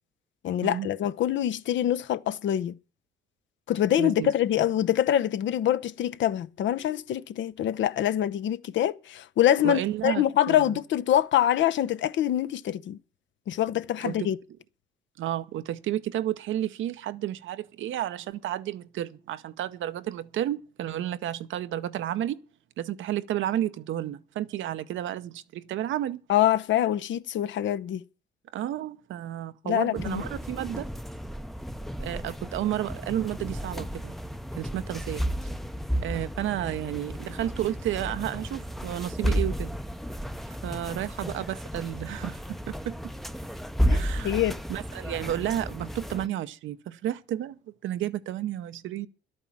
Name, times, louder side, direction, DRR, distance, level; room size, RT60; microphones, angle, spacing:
voice 1, 0.4-2.7 3.7-13.0 13.5-14.4 26.3-28.0 29.6-30.2 43.9-44.0 44.2-44.6, left 11 dB, 70° left, 0.7 m, -25 dB
voice 2, 4.0-4.3 9.6-10.6 14.0-14.3 15.2-22.4 22.8-26.2 28.5-30.9 32.0-34.1 34.6-35.2 36.0-39.8 40.5-43.0 43.9-44.4 44.7-47.6 47.8-49.1, right 12 dB, 80° right, 0.8 m, -32 dB
sound 1, 30.0-46.3, equal, ahead, 0.6 m, -33 dB
12.0 x 8.8 x 7.2 m
cardioid pair, 90°, 20 cm